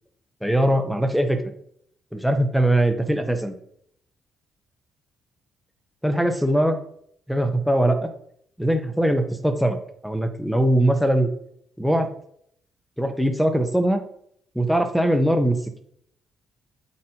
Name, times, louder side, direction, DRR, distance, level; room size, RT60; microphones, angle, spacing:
voice 1, 0.4-1.4 2.1-3.5 6.0-6.8 7.3-8.1 8.6-9.8 10.0-11.3 11.8-12.1 13.0-14.0 14.5-15.8, right 1 dB, ahead, 5 dB, 1.1 m, -21 dB
12.0 x 4.2 x 3.0 m, 0.66 s
cardioid pair, 90°, 0 cm